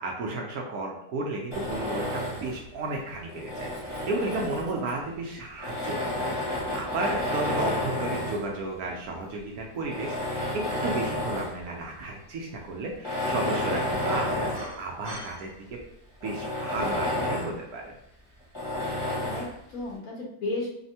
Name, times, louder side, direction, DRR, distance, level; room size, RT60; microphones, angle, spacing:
voice 1, 0.0-14.5 14.8-15.8 16.2-17.9, right 2 dB, 70° right, 0 dB, 1.0 m, -33 dB
Tools, 1.5-2.6 3.3-4.9 5.6-8.5 9.2-9.3 9.8-11.6 12.0-12.1 12.9-15.4 15.8-15.9 16.2-17.6 18.5-19.6, left 1 dB, 20° left, 0.8 m, -31 dB
voice 2, 4.3-4.9 19.2-20.7, left 2 dB, 65° left, -3 dB, 1.0 m, -35 dB
3.4 x 2.1 x 2.6 m, 0.73 s
omnidirectional pair, 1.8 m